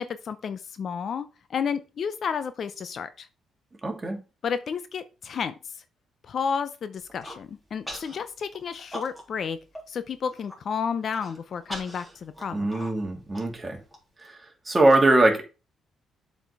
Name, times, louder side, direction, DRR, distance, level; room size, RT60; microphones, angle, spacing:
voice 1, 0.0-3.3 4.4-5.5 6.3-9.6 9.9-12.6, left 6 dB, 55° left, 0.7 m, -31 dB
voice 2, 3.8-4.2 12.5-13.8 14.2-14.4 14.7-15.4, right 2 dB, 20° right, 2.6 m, -22 dB
Human voice, 7.0-7.4 7.9-8.2 8.5-9.4 9.8-9.9 10.2-10.6 11.1-14.0, equal, 5° left, 3.4 m, -40 dB
7.5 x 5.2 x 4.7 m
cardioid pair, 90°, 0 cm